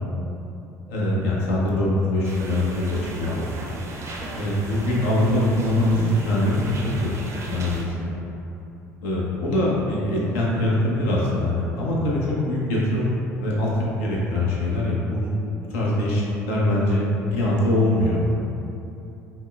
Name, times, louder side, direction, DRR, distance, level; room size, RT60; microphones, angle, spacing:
voice 1, 0.9-3.5 4.4-6.7 7.0-7.1 7.5-8.1 9.0-15.3 15.7-18.2, left 1 dB, 60° left, -4 dB, 0.7 m, -23 dB
sound 1, 2.2-7.8, right 2 dB, 35° right, 0.5 m, -34 dB
5.4 x 2.1 x 2.3 m, 2.8 s
figure-of-eight pair, 60°, 8 cm